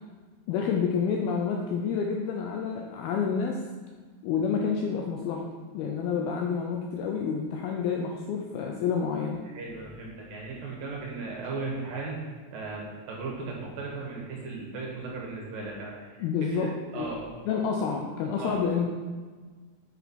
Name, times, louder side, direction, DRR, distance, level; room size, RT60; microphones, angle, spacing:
voice 1, 0.5-3.6 4.2-5.4 5.7-9.4 16.2-17.1 17.5-18.9, left 6 dB, 85° left, 1 dB, 2.2 m, -29 dB
voice 2, 9.4-12.2 12.5-17.3 18.4-18.6, right 3 dB, 65° right, -3 dB, 2.6 m, -37 dB
6.7 x 6.2 x 4.2 m, 1.5 s
omnidirectional pair, 4.9 m